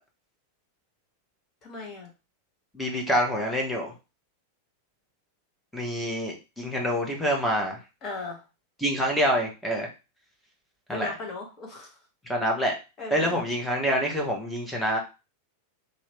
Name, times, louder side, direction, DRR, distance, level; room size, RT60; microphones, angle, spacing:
voice 1, 1.6-2.1 8.0-8.4 10.9-11.9 13.0-13.5, left 3 dB, 30° left, 0 dB, 1.3 m, -37 dB
voice 2, 2.7-3.9 5.7-7.8 8.8-9.9 10.9-11.1 12.3-12.7 13.1-15.0, equal, 5° left, 0 dB, 1.0 m, -26 dB
3.0 x 2.7 x 3.2 m, 0.29 s
figure-of-eight pair, 90°, 0 cm